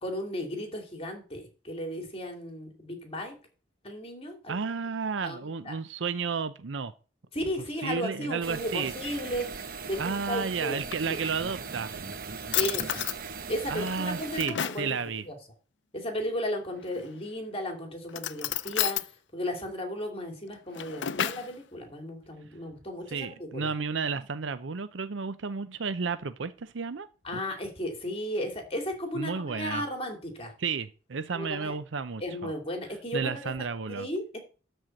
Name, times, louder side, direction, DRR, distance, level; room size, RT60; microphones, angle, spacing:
voice 1, 0.0-3.3 3.8-4.5 5.2-5.7 7.3-10.8 11.1-11.2 12.5-13.0 13.5-15.0 15.2-15.3 15.9-19.0 19.3-23.7 27.2-30.5 31.3-31.7 32.2-33.5 33.9-34.4, equal, 30° left, 2.7 m, -35 dB
voice 2, 4.5-6.9 7.8-8.9 10.0-12.0 13.7-15.2 23.1-27.1 29.1-29.8 30.6-32.5 33.1-34.1, right 5 dB, 90° right, 0.6 m, -32 dB
sound 1, 8.4-14.5, right 5 dB, 55° right, 1.0 m, -39 dB
Drawer open or close, 10.6-11.6 12.1-12.2 12.5-13.2 13.8-14.9 16.8-17.3 18.1-19.1 20.5-21.5, left 11 dB, 75° left, 0.6 m, -32 dB
12.5 x 4.5 x 7.7 m
head